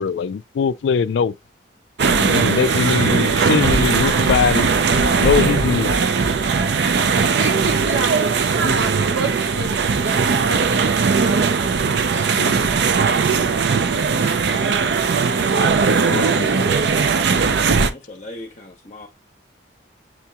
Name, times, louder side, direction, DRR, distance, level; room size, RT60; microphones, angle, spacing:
voice 1, 0.0-1.3 2.1-4.7 5.2-5.9 12.3-12.5 16.1-16.5, left 6 dB, 70° left, 0.3 m, -21 dB
sound 1, 2.0-17.9, right 5 dB, 65° right, 0.4 m, -19 dB
sound 2, 2.7-11.9, left 5 dB, 25° right, 0.8 m, -42 dB
voice 2, 7.4-10.4 11.1-12.6, right 3 dB, 80° right, 1.0 m, -29 dB
voice 3, 17.9-19.1, left 1 dB, 40° left, 0.7 m, -39 dB
7.4 x 2.9 x 2.2 m
head